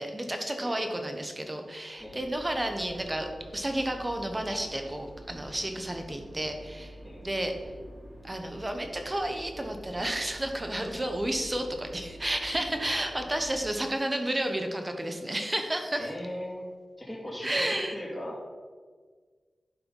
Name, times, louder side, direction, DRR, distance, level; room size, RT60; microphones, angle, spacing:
voice 1, 0.0-7.0 7.2-7.5 8.2-16.1 17.4-17.9, right 1 dB, 20° right, 5 dB, 1.1 m, -31 dB
sound 1, 2.0-13.6, right 1 dB, 55° right, 2.7 m, -47 dB
voice 2, 16.0-16.6 17.0-18.5, equal, 5° left, -6 dB, 2.5 m, -38 dB
11.5 x 4.5 x 5.4 m, 1.5 s
wide cardioid pair, 90°, 0 cm